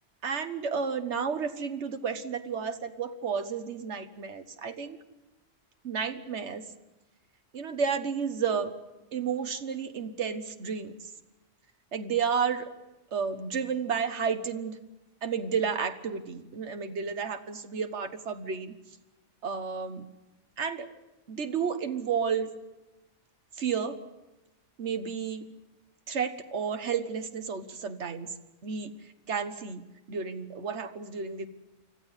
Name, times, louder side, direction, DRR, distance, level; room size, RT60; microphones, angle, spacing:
voice 1, 0.2-5.0 5.8-6.7 7.5-8.7 9.1-10.9 11.9-12.7 13.1-14.8 15.2-18.8 19.4-20.1 20.6-20.9 21.3-22.5 23.6-24.0 24.8-25.4 26.1-28.3 28.6-28.9 29.3-29.8 30.1-31.5, right 6 dB, 65° right, 8 dB, 1.6 m, -31 dB
25.0 x 14.5 x 9.9 m, 1.0 s
omnidirectional pair, 1.3 m